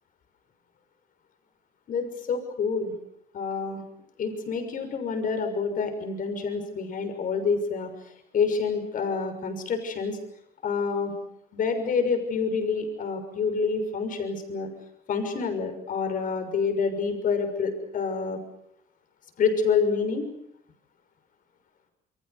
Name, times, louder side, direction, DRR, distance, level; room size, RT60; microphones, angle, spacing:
voice 1, 1.9-2.9 3.3-3.8 4.2-7.9 8.3-10.2 10.6-11.1 11.5-14.7 15.1-18.4 19.4-20.2, left 5 dB, 55° left, 7 dB, 6.2 m, -27 dB
28.5 x 23.5 x 6.7 m, 0.72 s
cardioid pair, 110°, 17 cm